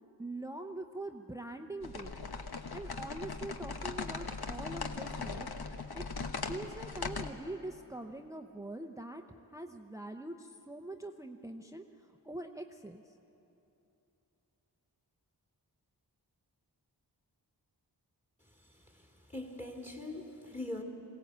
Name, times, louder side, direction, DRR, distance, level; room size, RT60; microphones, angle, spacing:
voice 1, 0.2-2.1 2.7-6.1 6.5-13.1, right 1 dB, 10° right, 5 dB, 0.7 m, -44 dB
sound 1, 1.8-7.3, left 4 dB, 65° left, 1.1 m, -39 dB
voice 2, 18.4-20.8, left 2 dB, 20° left, 1 dB, 2.3 m, -43 dB
21.5 x 17.0 x 8.1 m, 3.0 s
wide cardioid pair, 65°, 41 cm